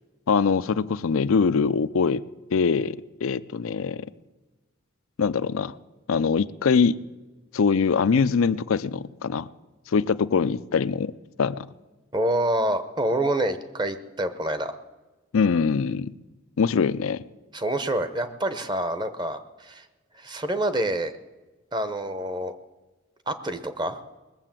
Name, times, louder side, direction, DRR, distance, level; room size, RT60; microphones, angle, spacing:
voice 1, 0.3-2.2 2.5-4.1 5.2-5.7 6.1-7.0 7.5-9.5 9.9-11.1 11.4-11.7 15.3-16.1 16.6-17.2, left 5 dB, 85° left, 13 dB, 0.5 m, -23 dB
voice 2, 12.1-14.8 17.5-19.9 20.1-21.1 21.7-22.5 23.3-24.0, right 1 dB, 20° right, 11 dB, 0.8 m, -27 dB
20.0 x 7.6 x 7.5 m, 1.2 s
head